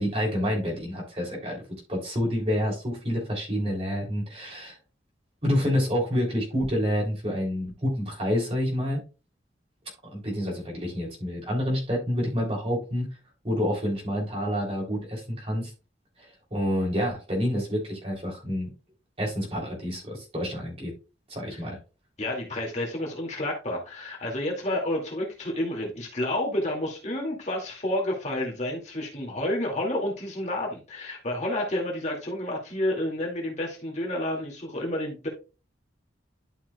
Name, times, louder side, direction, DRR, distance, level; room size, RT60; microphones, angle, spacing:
voice 1, 0.0-1.6 1.9-4.8 5.4-9.0 10.1-13.1 13.4-15.7 16.5-18.7 19.2-20.9 21.3-21.8, equal, 35° right, -1 dB, 3.1 m, -28 dB
voice 2, 22.2-35.3, left 1 dB, 40° left, -1 dB, 2.3 m, -30 dB
11.5 x 6.0 x 2.3 m, 0.32 s
head